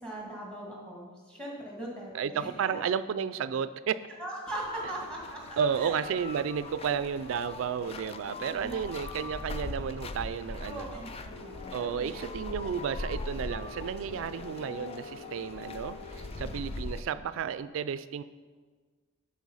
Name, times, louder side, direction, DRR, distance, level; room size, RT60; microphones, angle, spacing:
voice 1, 0.0-2.7 4.2-5.9 8.4-9.2 10.7-12.2 12.6-12.7, right 1 dB, 5° left, -3 dB, 2.0 m, -41 dB
voice 2, 2.1-4.0 5.6-11.0 11.7-18.2, right 7 dB, 70° right, 15 dB, 0.3 m, -32 dB
sound 1, 4.5-17.0, left 2 dB, 30° left, 0.4 m, -41 dB
sound 2, 4.8-16.8, left 1 dB, 55° left, 1.6 m, -53 dB
Telephone, 11.3-16.3, left 5 dB, 90° left, 0.8 m, -48 dB
11.0 x 4.3 x 5.4 m, 1.5 s
head